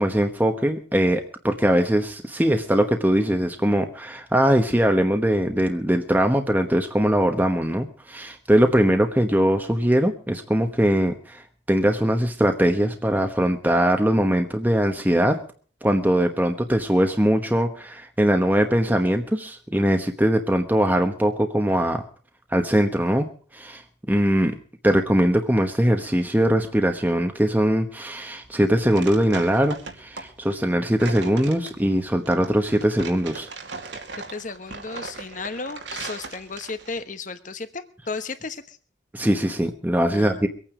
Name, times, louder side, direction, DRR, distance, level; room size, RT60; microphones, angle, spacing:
voice 1, 0.0-11.4 11.7-15.4 15.8-22.0 22.5-23.3 23.5-23.8 24.1-24.5 24.8-33.5 39.1-40.5, equal, 10° right, 5 dB, 1.1 m, -21 dB
sound 1, 28.4-37.0, right 4 dB, 85° right, 2.5 m, -38 dB
voice 2, 34.3-38.8 40.1-40.5, left 4 dB, 45° left, 10 dB, 1.2 m, -34 dB
23.5 x 9.1 x 5.0 m, 0.43 s
head